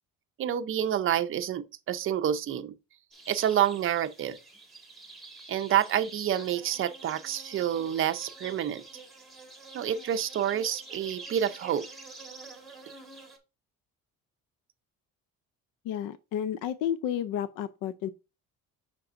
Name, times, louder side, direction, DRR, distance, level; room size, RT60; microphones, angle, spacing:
voice 1, 0.4-2.7 3.3-4.4 5.5-8.8 9.7-11.9, right 10 dB, 40° right, 0.5 m, -28 dB
sound 1, 3.1-13.4, right 3 dB, ahead, 1.5 m, -47 dB
voice 2, 15.8-18.1, left 10 dB, 70° left, 0.5 m, -31 dB
7.7 x 5.9 x 2.5 m
cardioid pair, 160°, 34 cm